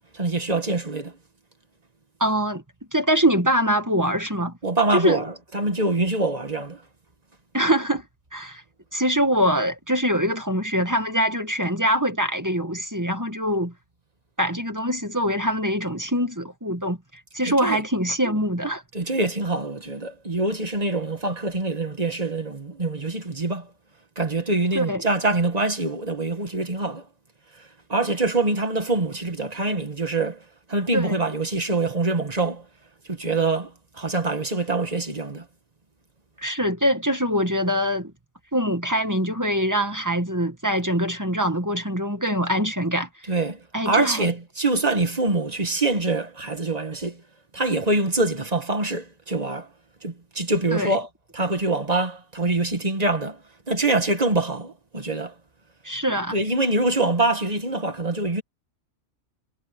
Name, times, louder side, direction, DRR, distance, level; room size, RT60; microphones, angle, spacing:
voice 1, 0.1-1.1 4.6-6.8 17.6-17.8 18.9-23.7 24.2-27.0 27.6-30.4 30.7-32.6 33.1-35.5 43.3-47.2 47.5-49.7 50.0-51.1 51.3-53.4 53.7-55.3 56.3-58.4, right 2 dB, 30° right, 1.9 m, -25 dB
voice 2, 2.2-2.6 2.9-4.5 4.9-5.2 7.5-8.1 8.3-8.6 8.9-13.7 14.4-17.0 17.3-18.8 24.7-25.0 30.9-31.2 36.4-38.1 38.5-43.1 43.7-44.3 50.7-51.0 55.8-56.4, equal, 15° right, 2.1 m, -23 dB
omnidirectional pair, 1.3 m